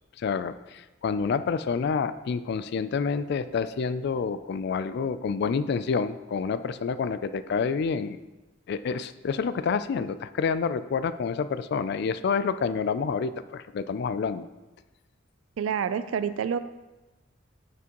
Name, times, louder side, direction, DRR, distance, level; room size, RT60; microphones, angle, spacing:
voice 1, 0.2-8.2 8.7-14.5, left 5 dB, 55° left, 13 dB, 0.3 m, -28 dB
voice 2, 15.6-16.6, right 7 dB, 85° right, 12 dB, 0.3 m, -28 dB
9.3 x 6.1 x 3.0 m, 1.1 s
head